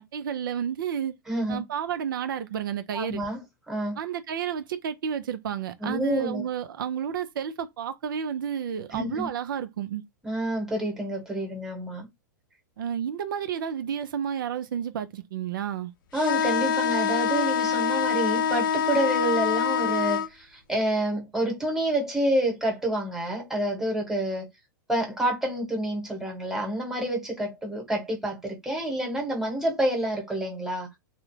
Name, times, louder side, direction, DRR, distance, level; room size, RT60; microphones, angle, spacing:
voice 1, 0.0-1.1 1.5-3.2 4.0-10.0 12.8-15.9, right 8 dB, 80° right, 0.4 m, -31 dB
voice 2, 1.3-1.6 2.9-3.4 3.7-4.0 5.8-6.4 8.9-9.3 10.2-12.1 16.1-24.5 24.9-30.9, right 1 dB, 5° right, 1.1 m, -28 dB
sound 1, 16.1-20.3, left 7 dB, 75° left, 0.5 m, -25 dB
2.3 x 2.0 x 3.1 m
hypercardioid pair, 120°, 11 cm